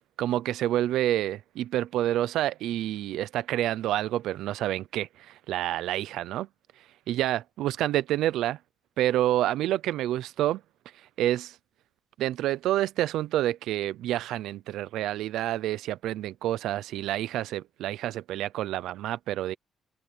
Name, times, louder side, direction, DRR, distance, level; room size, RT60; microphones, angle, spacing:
voice 1, 0.2-6.5 7.1-8.6 9.0-10.6 11.2-11.6 12.2-19.5, right 13 dB, 85° right, 0.6 m, -28 dB
open air
cardioid pair, 90°, 0 cm